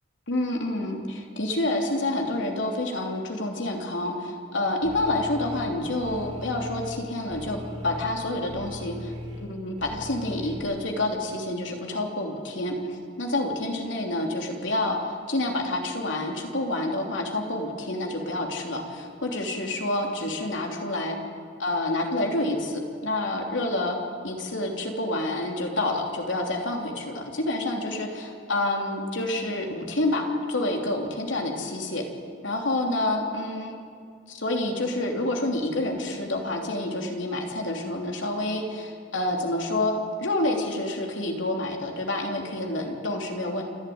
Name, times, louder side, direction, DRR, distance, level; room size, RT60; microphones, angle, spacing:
voice 1, 0.3-21.2 21.6-24.0 24.2-32.0 32.4-33.8 34.3-39.9 40.2-43.6, left 2 dB, 85° left, 1 dB, 3.0 m, -28 dB
sound 1, 4.8-10.6, left 1 dB, 35° right, 3.9 m, -39 dB
28.0 x 11.5 x 9.4 m, 2.2 s
head